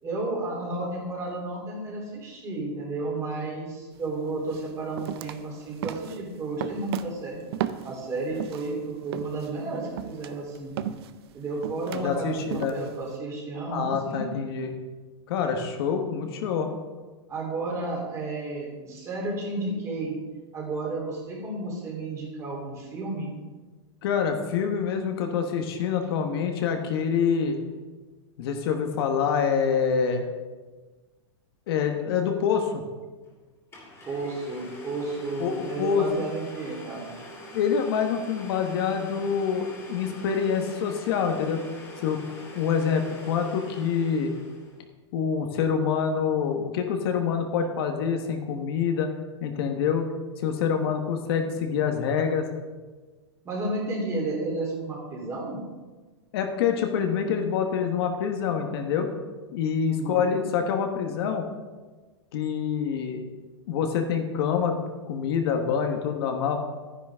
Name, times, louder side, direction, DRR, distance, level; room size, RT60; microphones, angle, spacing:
voice 1, 0.0-7.4 7.8-10.8 11.3-14.2 17.3-20.2 20.5-23.3 34.0-37.1 53.4-55.6 59.8-60.4, right 2 dB, 20° right, -3 dB, 3.2 m, -32 dB
sound 1, 3.9-4.1 4.5-8.7 9.1-13.1, right 11 dB, 55° right, 0.6 m, -35 dB
voice 2, 11.9-12.8 13.7-14.7 15.3-16.7 24.0-27.6 28.4-30.2 31.7-32.8 35.4-36.1 37.5-41.6 42.0-42.2 42.5-44.3 45.1-49.1 49.4-50.1 50.4-52.5 56.3-59.1 59.5-61.5 62.3-63.3 63.7-66.6, left 7 dB, 55° left, 4 dB, 1.3 m, -26 dB
Domestic sounds home sounds, 33.2-33.3 33.7-44.8, left 2 dB, 15° left, 2.9 m, -43 dB
12.0 x 10.0 x 3.6 m, 1.3 s
supercardioid pair, 155°, 15 cm